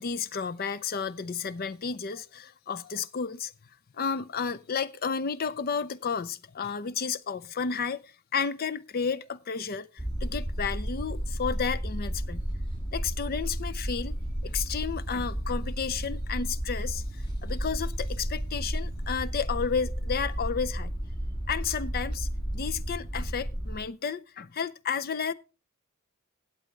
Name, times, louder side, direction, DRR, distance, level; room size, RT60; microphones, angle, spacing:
voice 1, 0.0-3.5 4.0-12.4 12.9-14.1 14.4-20.9 21.5-25.3, left 6 dB, 45° left, 0.5 m, -32 dB
sound 1, 10.0-23.8, equal, 20° left, 1.6 m, -32 dB
16.5 x 8.3 x 3.2 m
head